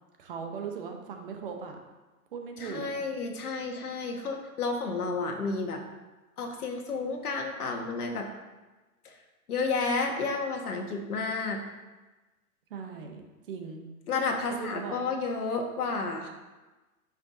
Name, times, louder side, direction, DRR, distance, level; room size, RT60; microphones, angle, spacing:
voice 1, 0.2-1.8 2.3-2.9 12.7-13.2 13.5-13.9 14.5-15.0, right 6 dB, 40° right, 4 dB, 0.9 m, -38 dB
voice 2, 2.6-5.8 6.4-8.3 9.0-9.2 9.5-11.6 14.1-16.3, left 4 dB, 85° left, 3 dB, 1.6 m, -31 dB
9.7 x 6.0 x 2.7 m, 1.2 s
hypercardioid pair, 165°, 44 cm